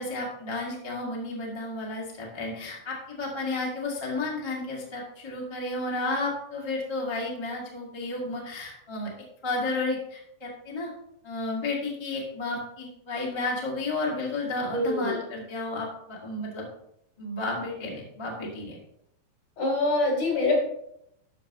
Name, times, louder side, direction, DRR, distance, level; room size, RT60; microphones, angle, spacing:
voice 1, 0.0-9.1 9.4-10.9 11.2-16.7 17.2-18.8, left 2 dB, 20° left, -4 dB, 0.8 m, -32 dB
voice 2, 14.6-15.2 19.6-20.6, left 2 dB, 45° left, -2 dB, 4.2 m, -25 dB
12.5 x 7.2 x 3.1 m, 0.76 s
omnidirectional pair, 4.5 m